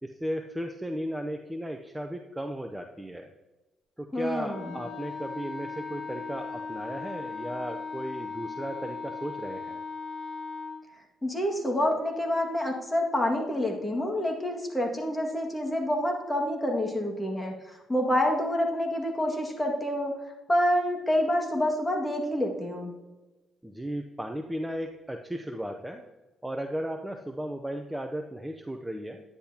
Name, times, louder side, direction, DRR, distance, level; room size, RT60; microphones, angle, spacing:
voice 1, 0.0-3.3 4.0-9.8 23.6-26.1 26.4-29.2, equal, 10° right, 4 dB, 0.6 m, -35 dB
voice 2, 4.1-4.8 11.2-20.1 20.5-22.9, left 1 dB, 15° left, 1 dB, 1.9 m, -27 dB
Wind instrument woodwind instrument, 4.5-10.8, left 4 dB, 45° left, 1.3 m, -38 dB
10.5 x 10.0 x 2.8 m, 1.1 s
cardioid pair, 90°, 0 cm